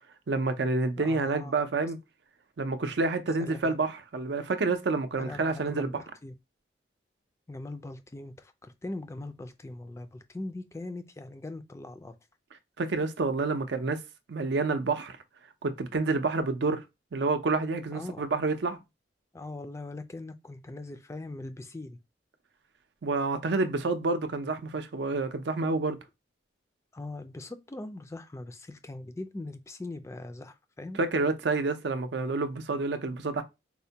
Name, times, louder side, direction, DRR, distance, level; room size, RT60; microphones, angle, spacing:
voice 1, 0.3-2.0 2.6-6.0 12.8-14.0 14.3-15.2 15.6-16.8 17.1-18.8 23.0-26.0 31.0-33.4, right 3 dB, 70° right, 0.5 m, -28 dB
voice 2, 1.0-1.6 3.4-3.8 5.2-6.3 7.5-12.1 17.9-18.3 19.3-22.0 26.9-31.0, left 2 dB, 15° left, 0.3 m, -41 dB
4.2 x 2.2 x 2.7 m
head